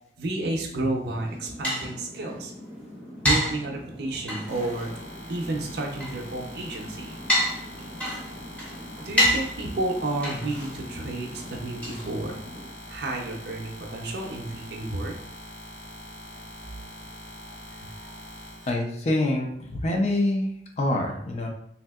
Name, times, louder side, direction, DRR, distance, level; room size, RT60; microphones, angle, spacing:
voice 1, 0.2-2.5 3.2-4.9 5.3-7.2 9.0-12.4 12.9-15.1 17.7-18.1, right 2 dB, 65° right, 0 dB, 0.5 m, -31 dB
sound 1, 1.0-12.7, equal, 10° left, 0.7 m, -31 dB
sound 2, 4.5-18.7, left 1 dB, 80° left, 0.6 m, -43 dB
voice 2, 18.7-20.5 20.8-21.5, left 1 dB, 40° left, 1 dB, 0.4 m, -25 dB
3.4 x 2.6 x 2.3 m, 0.70 s
head